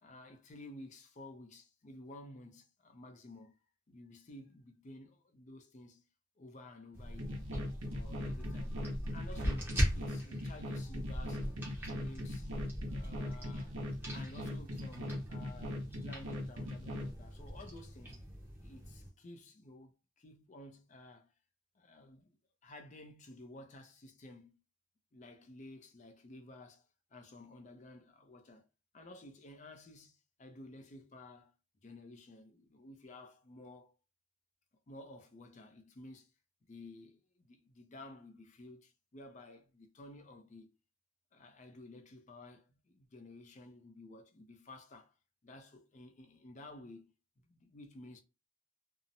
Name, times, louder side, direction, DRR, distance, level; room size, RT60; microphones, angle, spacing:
voice 1, 0.0-3.6 3.9-6.1 6.4-7.4 7.9-8.8 9.1-11.6 11.8-12.5 12.8-13.8 14.1-18.2 18.6-21.3 21.7-22.3 22.6-24.6 25.1-28.6 28.9-31.5 31.8-34.0 34.9-36.3 36.7-40.7 41.3-45.1 45.4-47.1 47.5-48.2, left 2 dB, 35° left, 0.4 m, -53 dB
sound 1, 6.9-19.1, equal, 10° right, 0.7 m, -40 dB
sound 2, 7.2-17.1, left 1 dB, 80° right, 0.8 m, -41 dB
2.7 x 2.0 x 2.6 m
head